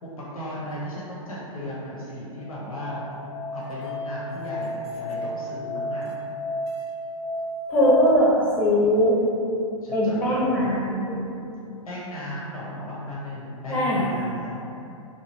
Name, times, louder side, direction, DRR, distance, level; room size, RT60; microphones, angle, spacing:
voice 1, 0.0-3.0 3.5-6.1 9.8-10.8 11.8-14.6, equal, 90° left, -7 dB, 0.7 m, -35 dB
Musical instrument, 2.4-8.1, left 1 dB, 45° left, 0.4 m, -32 dB
voice 2, 7.7-9.2 9.9-11.3 13.7-14.1, equal, 10° left, -7 dB, 0.7 m, -21 dB
3.0 x 2.2 x 2.9 m, 2.7 s
hypercardioid pair, 115°, 18 cm